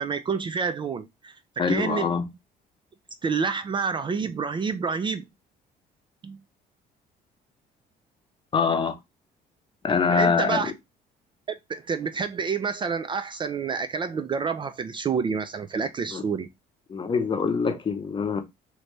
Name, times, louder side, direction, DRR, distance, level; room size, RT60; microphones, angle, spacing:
voice 1, 0.0-1.3 1.7-2.3 3.2-5.2 6.2-6.4 10.1-10.7 11.5-16.5, right 5 dB, 30° right, 0.3 m, -28 dB
voice 2, 1.6-2.2 8.5-9.0 9.8-10.7 16.1-16.2 16.9-18.4, left 5 dB, 30° left, 0.7 m, -24 dB
3.1 x 2.6 x 3.2 m
cardioid pair, 110°, 17 cm